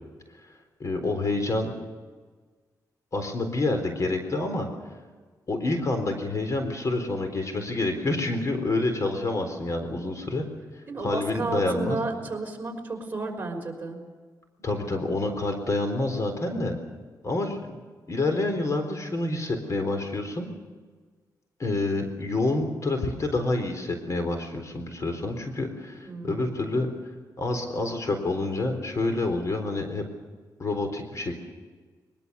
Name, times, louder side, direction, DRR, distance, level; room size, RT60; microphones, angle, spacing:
voice 1, 0.8-1.7 3.1-4.7 5.5-10.5 11.0-12.0 14.6-16.8 17.2-17.7 18.1-20.5 21.6-26.9 27.4-30.0 30.6-31.4, left 2 dB, 45° left, 6 dB, 4.0 m, -28 dB
voice 2, 10.9-14.0 26.1-26.8, right 3 dB, 25° right, 1 dB, 5.5 m, -32 dB
22.5 x 22.0 x 7.0 m, 1.4 s
cardioid pair, 105°, 7 cm